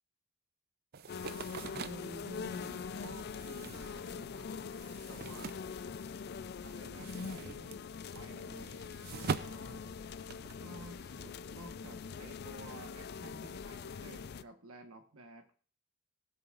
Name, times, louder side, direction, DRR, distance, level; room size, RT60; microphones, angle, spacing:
sound 1, 0.9-6.4 6.7-10.6, right 5 dB, 45° right, 0.4 m, -43 dB
sound 2, 1.1-14.4, left 5 dB, 50° left, 0.4 m, -43 dB
voice 1, 1.7-4.5 4.9-5.6 6.6-7.8 8.1-8.8 9.1-9.8 10.6-15.5, right 1 dB, 85° right, 5 dB, 1.3 m, -52 dB
19.5 x 6.9 x 2.5 m, 0.41 s
head